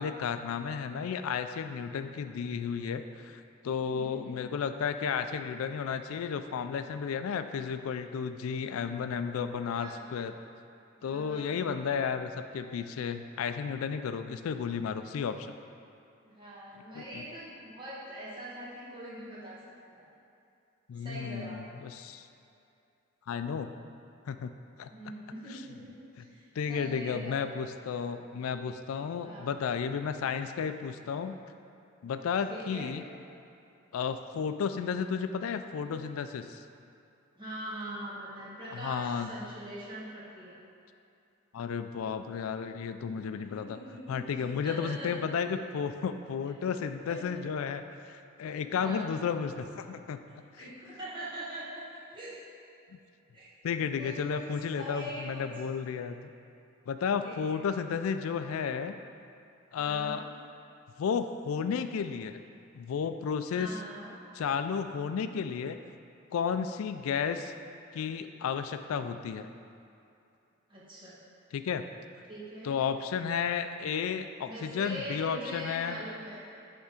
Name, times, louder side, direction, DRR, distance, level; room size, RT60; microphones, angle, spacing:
voice 1, 0.0-10.3 11.0-15.5 16.9-17.3 20.9-22.3 23.3-23.7 24.3-24.5 24.8-24.9 25.5-25.6 26.6-31.4 32.0-33.0 33.9-36.6 38.7-39.3 41.5-43.8 44.1-50.2 50.6-50.7 52.9-53.0 53.6-56.3 56.9-58.9 59.7-60.3 61.0-62.4 62.7-63.8 64.3-65.8 66.3-67.5 67.9-69.5 71.5-71.8 72.6-76.0, left 6 dB, 90° left, 9 dB, 0.3 m, -33 dB
voice 2, 3.9-4.4 9.7-10.1 11.0-11.7 16.2-19.6 19.9-20.1 21.0-21.6 24.9-27.5 29.2-29.5 32.5-32.9 37.3-40.6 43.4-45.1 47.1-47.2 48.7-49.1 50.6-52.4 53.3-53.5 54.0-55.5 57.2-57.6 59.8-60.2 63.5-64.1 70.7-71.2 72.3-72.8 74.4-76.5, right 1 dB, 25° right, -8 dB, 1.6 m, -43 dB
8.1 x 3.5 x 5.0 m, 2.7 s
head